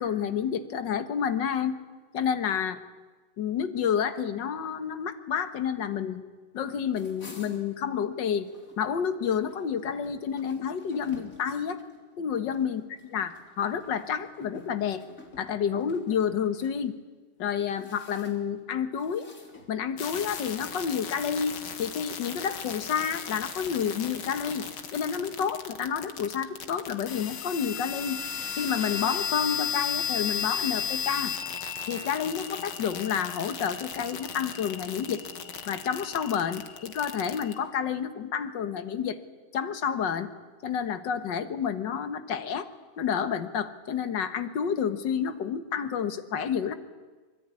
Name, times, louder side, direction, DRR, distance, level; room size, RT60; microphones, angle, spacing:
voice 1, 0.0-1.8 2.1-2.8 3.4-6.2 6.5-8.5 8.8-11.8 12.2-15.0 15.4-17.0 17.4-19.3 19.7-28.2 28.6-31.4 31.9-35.2 35.7-39.2 39.5-40.3 40.6-42.7 43.0-46.7, left 7 dB, 60° left, 10 dB, 1.9 m, -29 dB
sound 1, 6.9-8.8 9.1-16.7 17.4-18.6 19.0-20.2 20.7-20.9 21.3-22.1 22.7-24.7, left 2 dB, 40° left, 3.8 m, -51 dB
sound 2, 20.0-37.6, left 7 dB, 85° left, 2.5 m, -35 dB
25.0 x 22.0 x 9.7 m, 1.3 s
omnidirectional pair, 2.2 m